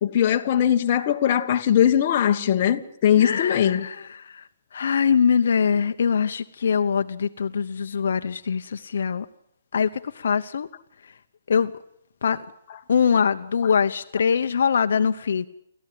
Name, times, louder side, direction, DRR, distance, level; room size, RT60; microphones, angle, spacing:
voice 1, 0.0-3.9, left 10 dB, 30° left, 1.4 m, -20 dB
voice 2, 3.2-4.4 4.7-9.2 9.7-10.7 11.5-11.7 12.2-12.4 12.9-15.5, left 6 dB, 60° left, 0.9 m, -23 dB
29.0 x 14.0 x 7.7 m
hypercardioid pair, 175°, 0 cm